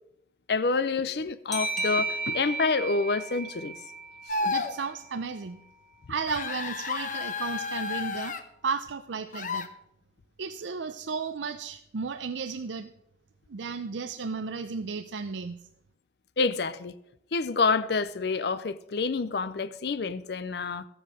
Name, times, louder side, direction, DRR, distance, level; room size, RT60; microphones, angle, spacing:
voice 1, 0.5-3.7 4.3-4.5 16.4-16.9 17.3-20.9, left 4 dB, 60° left, 0.5 m, -28 dB
sound 1, 1.5-4.8, right 3 dB, ahead, 1.5 m, -34 dB
sound 2, 4.3-4.7 6.3-8.4 9.3-9.7, left 4 dB, 45° left, 1.0 m, -31 dB
voice 2, 4.4-5.6 6.1-8.4 8.6-9.7 10.4-12.9 13.5-15.6, right 5 dB, 80° right, 0.5 m, -34 dB
14.0 x 7.8 x 6.3 m
head